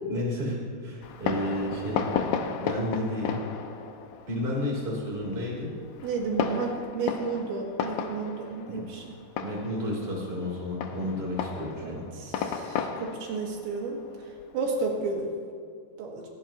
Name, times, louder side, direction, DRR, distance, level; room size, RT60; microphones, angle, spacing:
voice 1, 0.0-2.1 2.6-3.5 4.3-5.7 8.7-8.8 9.4-12.0, left 1 dB, 15° right, -4 dB, 3.4 m, -31 dB
Fireworks, 1.0-15.2, left 7 dB, 85° left, 2.1 m, -34 dB
voice 2, 6.0-9.0 11.7-14.0 14.5-15.3 16.0-16.2, right 4 dB, 85° right, -1 dB, 4.3 m, -32 dB
18.5 x 16.5 x 3.0 m, 2.2 s
omnidirectional pair, 5.1 m